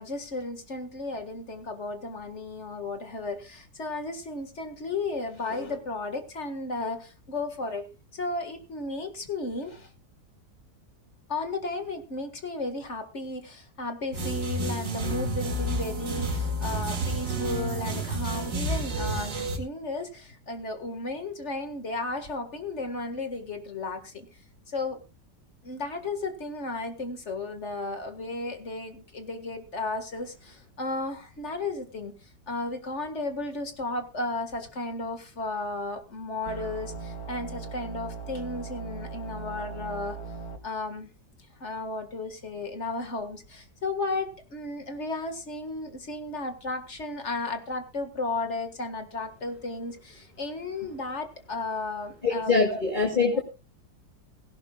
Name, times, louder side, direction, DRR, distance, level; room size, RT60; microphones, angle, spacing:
voice 1, 0.0-7.9 8.1-9.9 11.3-24.3 24.7-25.0 25.6-32.2 32.5-40.2 40.6-41.1 41.6-53.4, left 2 dB, 40° left, 8 dB, 2.0 m, -34 dB
sound 1, 14.1-19.6, right 1 dB, 85° right, 2.9 m, -30 dB
sound 2, 36.5-40.6, right 4 dB, 60° left, 2.1 m, -39 dB
voice 2, 52.2-53.4, left 4 dB, 25° left, 0 dB, 2.6 m, -23 dB
17.5 x 16.5 x 2.3 m, 0.30 s
omnidirectional pair, 1.8 m